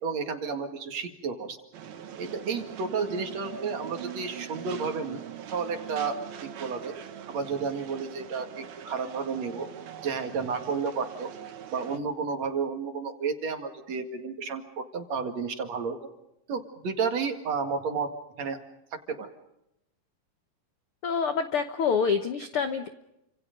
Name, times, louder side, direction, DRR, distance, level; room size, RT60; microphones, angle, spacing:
voice 1, 0.0-1.6 2.2-5.2 5.5-6.9 7.3-9.7 10.0-11.3 11.7-16.0 16.5-18.6 19.1-19.3, right 5 dB, 50° right, 6 dB, 2.9 m, -31 dB
sound 1, 1.7-12.0, right 9 dB, 80° right, 3.7 m, -42 dB
voice 2, 21.0-22.9, left 6 dB, 80° left, 8 dB, 1.2 m, -26 dB
29.0 x 26.5 x 5.3 m, 0.87 s
omnidirectional pair, 4.3 m